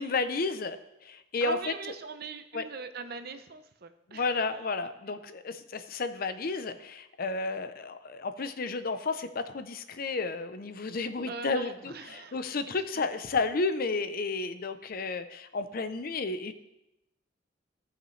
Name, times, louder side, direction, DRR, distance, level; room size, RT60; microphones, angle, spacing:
voice 1, 0.0-1.7 2.5-2.6 4.1-16.5, left 3 dB, 50° left, 10 dB, 0.6 m, -32 dB
voice 2, 1.4-4.4 11.3-12.5, right 4 dB, 55° right, 9 dB, 0.7 m, -41 dB
15.5 x 5.9 x 3.2 m, 0.88 s
head